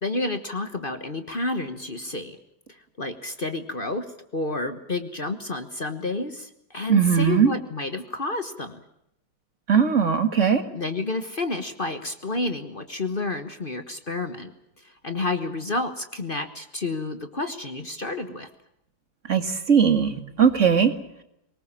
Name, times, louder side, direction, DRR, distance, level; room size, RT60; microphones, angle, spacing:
voice 1, 0.0-2.4 2.7-8.8 10.7-14.5 14.8-18.5, left 2 dB, 35° left, 9 dB, 1.4 m, -30 dB
voice 2, 6.9-7.5 9.7-10.6 19.3-20.9, right 7 dB, 45° right, 9 dB, 1.9 m, -19 dB
24.0 x 20.5 x 7.3 m, 0.79 s
omnidirectional pair, 1.8 m